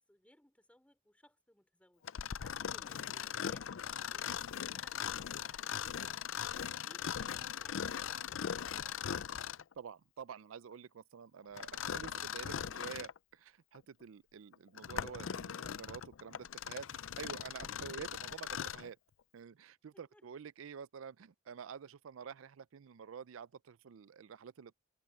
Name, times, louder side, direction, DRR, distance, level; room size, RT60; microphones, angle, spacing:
voice 1, 0.1-9.2 19.9-20.2, left 1 dB, 5° left, 3.3 m, -64 dB
Mechanisms, 2.0-9.7 11.6-13.2 13.7-13.8 14.5-18.9, left 8 dB, 75° left, 0.5 m, -40 dB
voice 2, 9.8-19.0 19.3-24.7, right 7 dB, 90° right, 0.4 m, -49 dB
head